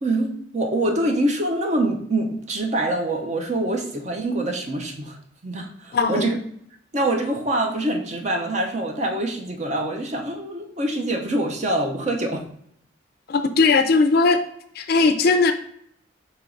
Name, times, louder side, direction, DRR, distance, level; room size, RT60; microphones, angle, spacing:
voice 1, 0.0-5.2 5.4-6.4 6.9-12.4, right 1 dB, 40° right, 2 dB, 0.7 m, -25 dB
voice 2, 5.9-6.3 13.3-14.4 14.8-15.5, left 4 dB, 55° left, 9 dB, 0.4 m, -18 dB
4.6 x 3.0 x 3.8 m, 0.68 s
head